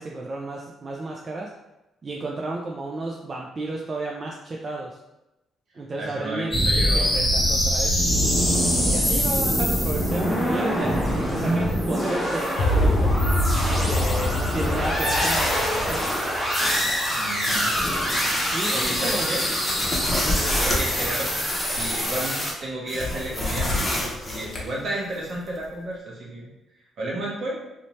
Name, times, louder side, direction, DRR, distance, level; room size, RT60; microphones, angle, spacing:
voice 1, 0.0-1.5 2.0-5.0 5.8-8.2 8.8-13.2 13.7-16.0 18.5-19.3 20.2-20.6, right 2 dB, 35° right, -1 dB, 0.3 m, -33 dB
voice 2, 6.0-7.1 17.1-17.7 18.7-19.5 20.5-26.5 27.0-27.6, right 1 dB, 60° right, -4 dB, 1.0 m, -32 dB
sound 1, 6.5-22.5, equal, ahead, 1.0 m, -24 dB
sound 2, 12.6-16.9, left 1 dB, 80° left, 0.4 m, -24 dB
sound 3, 19.7-21.3 22.9-24.6, left 1 dB, 25° left, 0.7 m, -27 dB
2.7 x 2.1 x 3.0 m, 0.94 s
cardioid pair, 90°, 0 cm